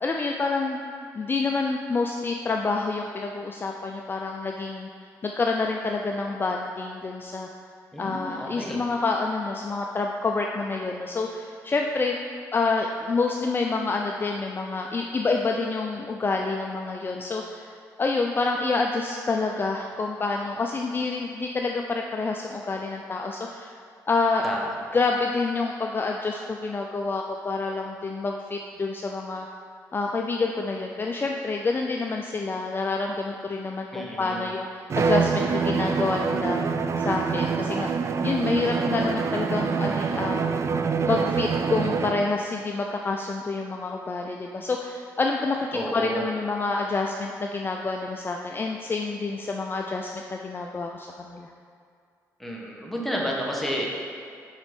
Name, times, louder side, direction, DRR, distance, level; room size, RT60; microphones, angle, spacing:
voice 1, 0.0-0.8 1.1-4.9 5.2-7.5 8.0-12.2 12.5-17.7 18.0-23.8 24.1-24.5 24.9-29.5 29.9-36.7 37.0-37.9 38.2-40.5 41.0-51.5, left 3 dB, 30° left, 1 dB, 0.5 m, -28 dB
voice 2, 7.9-8.8 24.4-24.6 33.9-34.5 45.7-46.3 52.4-53.9, equal, 5° left, -3 dB, 1.6 m, -31 dB
Bowed string instrument, 34.9-42.3, right 5 dB, 45° right, 0.4 m, -25 dB
6.2 x 5.3 x 5.3 m, 2.3 s
cardioid pair, 70°, 7 cm